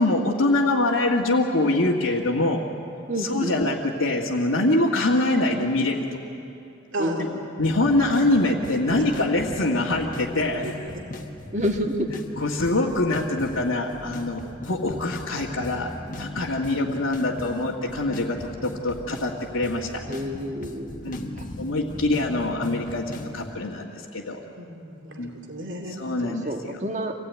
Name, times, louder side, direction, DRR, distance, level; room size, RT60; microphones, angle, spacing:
voice 1, 0.0-2.6 3.2-6.2 7.2-10.7 12.4-15.9 16.2-20.0 21.0-21.2 21.6-24.4 25.2-25.3 25.9-26.5, left 2 dB, 80° left, -5 dB, 1.8 m, -24 dB
voice 2, 3.1-3.6 7.0-7.2 11.5-12.1 20.1-20.9 21.4-21.5 21.9-22.1 26.2-27.1, equal, 35° right, 4 dB, 1.6 m, -28 dB
voice 3, 6.9-7.2 9.0-9.1 10.5-10.7 13.6-13.8 24.6-26.0, right 1 dB, 65° right, 1 dB, 2.8 m, -34 dB
sound 1, 7.6-23.5, left 1 dB, 40° left, 1.5 m, -39 dB
26.0 x 17.0 x 9.5 m, 2.8 s
head